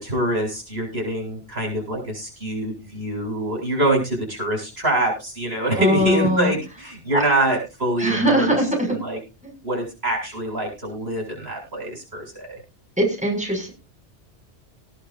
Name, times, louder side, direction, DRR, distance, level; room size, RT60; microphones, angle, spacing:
voice 1, 0.0-8.5 9.0-9.2 9.6-12.6, right 1 dB, 60° right, 0 dB, 8.0 m, -25 dB
voice 2, 5.8-6.5 7.1-7.2 8.0-8.9 13.0-13.7, equal, 5° right, 1 dB, 6.8 m, -20 dB
19.5 x 11.5 x 2.7 m, 0.29 s
omnidirectional pair, 1.2 m